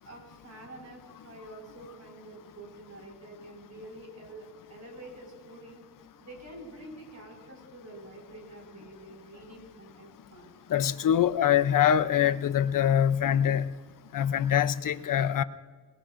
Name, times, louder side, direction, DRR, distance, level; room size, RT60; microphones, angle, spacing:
voice 1, 0.0-5.8 6.2-10.5, right 1 dB, 55° right, 0 dB, 5.9 m, -47 dB
voice 2, 10.7-13.7 14.1-15.4, left 9 dB, 70° left, 13 dB, 0.6 m, -24 dB
27.5 x 20.0 x 2.5 m, 1.5 s
wide cardioid pair, 130°, 33 cm